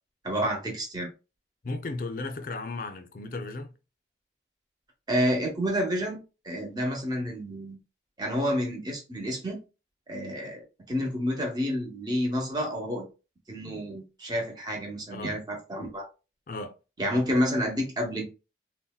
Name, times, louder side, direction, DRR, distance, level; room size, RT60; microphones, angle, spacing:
voice 1, 0.2-1.1 5.1-6.2 6.4-7.8 8.2-9.6 10.1-10.6 10.9-13.1 13.5-16.0 17.0-18.2, equal, 20° right, 0.8 m, -29 dB
voice 2, 1.6-3.7 15.1-15.4 16.5-16.7, left 3 dB, 50° left, 0.4 m, -35 dB
3.9 x 2.1 x 2.3 m
head